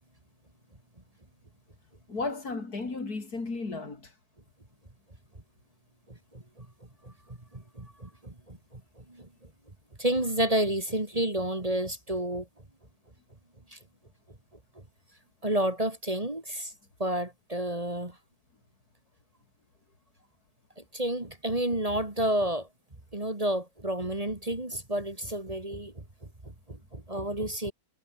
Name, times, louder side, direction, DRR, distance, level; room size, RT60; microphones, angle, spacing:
voice 1, 2.1-4.1, left 3 dB, 70° left, 4.3 m, -34 dB
voice 2, 6.1-6.7 7.0-9.5 10.0-12.5 13.7-13.8 15.4-16.7 17.0-18.2 20.9-22.7 23.1-26.0 26.4-27.7, right 1 dB, 20° right, 2.6 m, -31 dB
omnidirectional pair, 1.7 m